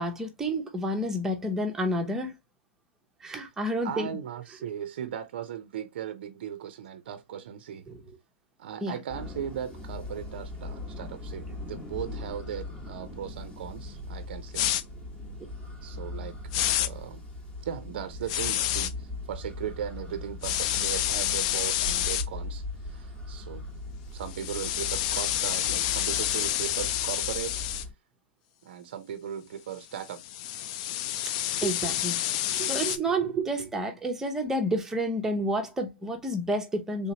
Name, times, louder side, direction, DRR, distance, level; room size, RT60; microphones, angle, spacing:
voice 1, 0.0-2.4 3.2-4.1 7.9-8.0 8.8-8.9 31.2-31.3 31.6-37.1, right 1 dB, 5° right, 0.7 m, -30 dB
voice 2, 3.8-7.9 8.6-14.7 15.8-16.4 16.8-17.2 17.6-23.6 24.1-27.8 28.6-30.2, right 9 dB, 55° right, 0.5 m, -37 dB
sound 1, 9.1-27.9, left 2 dB, 10° left, 0.9 m, -40 dB
sound 2, 14.5-14.8 16.5-16.9 18.3-18.9 20.4-22.2 24.3-27.8 30.0-33.0, left 12 dB, 35° left, 0.3 m, -28 dB
3.4 x 2.8 x 2.8 m
hypercardioid pair, 150°, 6 cm